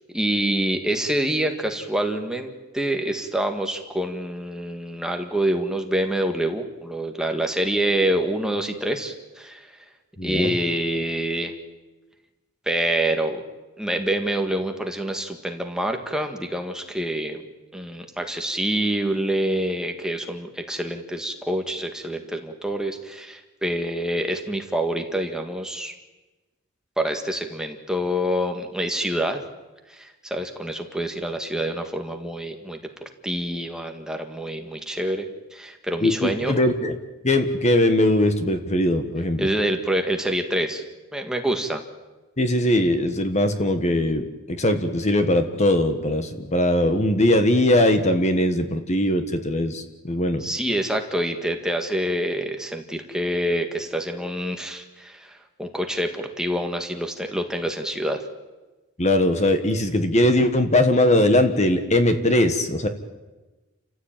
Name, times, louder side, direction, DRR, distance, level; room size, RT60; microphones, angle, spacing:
voice 1, 0.1-9.7 10.2-11.5 12.6-13.4 13.8-17.4 17.7-25.9 27.0-29.4 29.9-32.8 33.2-36.6 39.4-40.8 41.1-41.8 50.4-58.2, right 1 dB, 5° right, 4 dB, 1.8 m, -26 dB
voice 2, 10.2-10.5 36.0-36.9 37.2-39.5 42.4-50.4 59.0-62.9, left 1 dB, 30° left, 8 dB, 1.6 m, -20 dB
29.5 x 15.0 x 9.1 m, 1.2 s
head